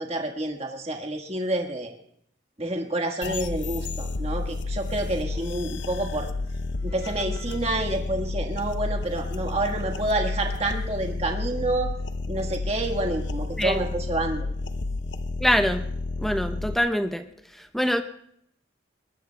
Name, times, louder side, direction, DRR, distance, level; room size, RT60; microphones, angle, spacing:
voice 1, 0.0-1.9 2.6-6.3 6.8-11.9 12.3-14.5, right 2 dB, 35° right, 3 dB, 1.5 m, -28 dB
sound 1, 3.2-16.7, left 3 dB, 80° left, 0.7 m, -31 dB
voice 2, 15.4-15.8 16.2-17.2 17.7-18.0, equal, ahead, 8 dB, 0.7 m, -24 dB
22.0 x 20.5 x 2.3 m, 0.69 s
head